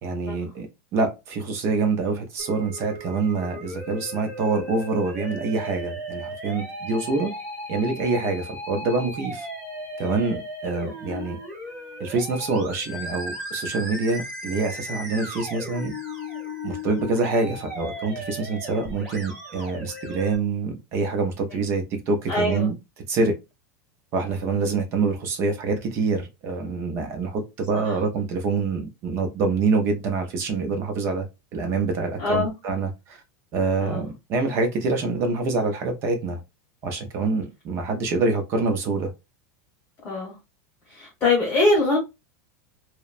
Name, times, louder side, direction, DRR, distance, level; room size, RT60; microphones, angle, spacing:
voice 1, 0.0-0.7 0.9-7.3 7.7-9.5 10.0-11.4 12.0-15.9 16.6-22.8 23.1-23.3 24.1-31.2 31.5-33.2 33.5-36.4 36.8-39.1, right 3 dB, 30° right, 0.5 m, -26 dB
Musical instrument, 2.4-20.4, equal, ahead, 1.3 m, -36 dB
voice 2, 22.3-22.7 24.3-24.4 27.7-28.0 32.2-32.5 33.8-34.0 40.0-40.4 40.9-42.0, left 2 dB, 20° left, 1.1 m, -23 dB
2.9 x 2.0 x 2.4 m
supercardioid pair, 170°, 9 cm